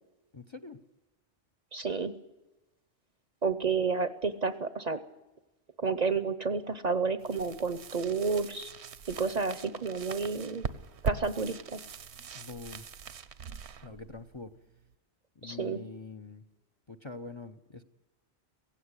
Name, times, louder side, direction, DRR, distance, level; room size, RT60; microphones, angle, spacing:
voice 1, 0.3-0.8 12.3-12.9 13.8-14.5 15.4-16.4 16.9-17.8, left 4 dB, 30° left, 11 dB, 0.7 m, -44 dB
voice 2, 1.7-2.1 3.4-5.0 5.8-8.7 9.1-10.7 11.0-11.8 15.4-15.8, right 5 dB, 40° right, 13 dB, 0.8 m, -30 dB
sound 1, 7.2-14.9, right 7 dB, 75° right, 1.2 m, -41 dB
16.5 x 16.5 x 9.7 m, 1.1 s
omnidirectional pair, 1.2 m